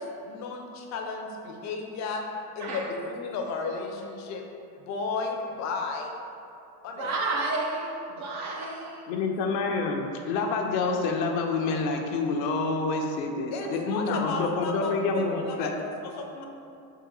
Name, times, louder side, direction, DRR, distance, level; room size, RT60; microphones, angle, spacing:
voice 1, 0.0-2.2 2.6-4.4 4.8-6.1 6.8-7.1 13.5-16.4, left 4 dB, 35° left, 2 dB, 0.5 m, -33 dB
voice 2, 7.0-9.0, right 3 dB, 40° right, 1 dB, 0.4 m, -31 dB
voice 3, 9.1-15.7, left 3 dB, 85° left, 2 dB, 0.7 m, -28 dB
3.8 x 2.6 x 3.9 m, 2.7 s
supercardioid pair, 120°, 48 cm